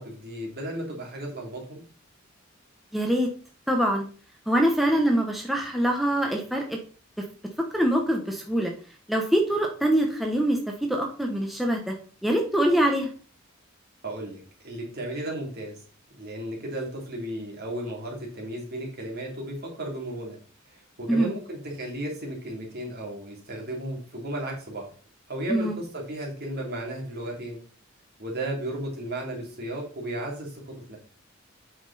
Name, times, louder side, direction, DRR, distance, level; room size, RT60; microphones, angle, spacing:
voice 1, 0.0-1.8 14.0-15.8 16.1-20.4 20.7-24.9 25.3-27.6 28.2-30.6 30.9-31.0, right 1 dB, 50° right, -1 dB, 3.0 m, -34 dB
voice 2, 2.9-3.3 3.7-4.0 4.5-6.8 7.7-8.7 9.1-10.6 10.9-11.9 12.2-13.1 21.1-21.3 25.5-25.8, right 1 dB, ahead, 0 dB, 1.0 m, -24 dB
8.1 x 6.1 x 4.2 m, 0.39 s
head